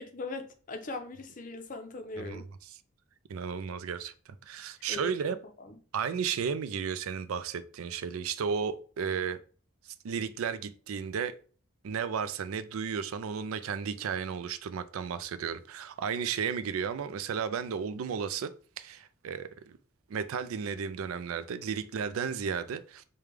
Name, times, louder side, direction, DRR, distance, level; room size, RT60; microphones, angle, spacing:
voice 1, 0.0-2.5 4.9-5.8, left 3 dB, 40° left, 0.5 m, -40 dB
voice 2, 3.3-4.1 4.5-5.4 5.9-9.4 10.0-11.4 11.8-19.5 20.1-23.0, right 6 dB, 90° right, 0.4 m, -33 dB
4.9 x 2.2 x 3.4 m
head